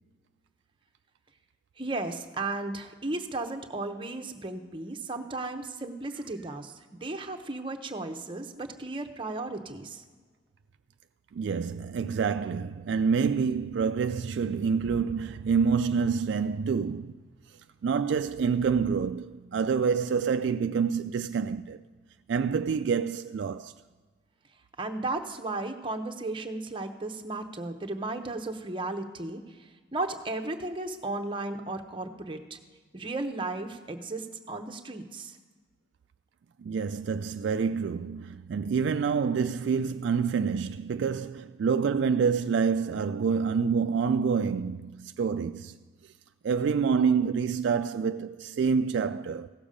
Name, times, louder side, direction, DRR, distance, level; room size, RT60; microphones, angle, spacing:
voice 1, 1.8-10.0 24.8-32.6 32.9-35.4, right 2 dB, 25° right, 0.8 m, -35 dB
voice 2, 11.3-17.1 17.8-21.8 22.3-23.7 36.6-45.7 46.4-49.5, right 6 dB, 65° right, 0.3 m, -27 dB
16.0 x 7.1 x 5.1 m
head